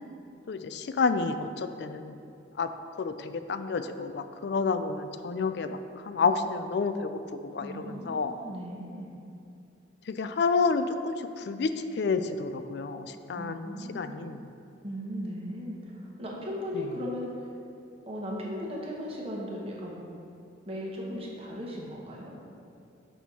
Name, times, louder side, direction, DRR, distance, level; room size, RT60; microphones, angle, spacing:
voice 1, 0.5-2.2 2.6-2.7 3.0-8.4 10.1-14.4, left 4 dB, 60° left, 10 dB, 0.3 m, -30 dB
voice 2, 7.6-9.1 13.3-14.2 14.8-17.5 18.1-20.0 20.7-22.4, equal, 30° right, -3 dB, 1.0 m, -37 dB
6.2 x 4.5 x 5.3 m, 2.6 s
head